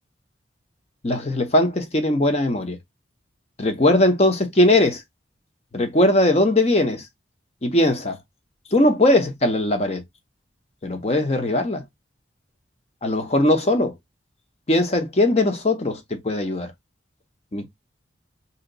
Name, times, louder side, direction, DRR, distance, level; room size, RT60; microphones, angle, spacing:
voice 1, 1.0-2.8 3.6-5.0 5.7-7.0 7.6-8.2 8.7-10.0 10.8-11.8 13.0-13.9 14.7-16.7 17.5-17.6, left 1 dB, 35° left, 0.8 m, -20 dB
2.8 x 2.8 x 3.9 m
head